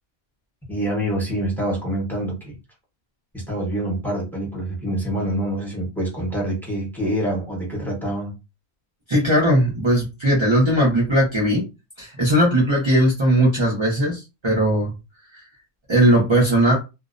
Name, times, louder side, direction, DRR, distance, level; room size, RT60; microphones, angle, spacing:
voice 1, 0.7-2.5 3.3-8.3, right 1 dB, ahead, -2 dB, 0.6 m, -26 dB
voice 2, 9.1-11.6 12.0-14.9 15.3-15.4 15.9-16.7, right 1 dB, 40° right, -5 dB, 0.4 m, -18 dB
2.5 x 2.0 x 2.4 m, 0.27 s
omnidirectional pair, 1.5 m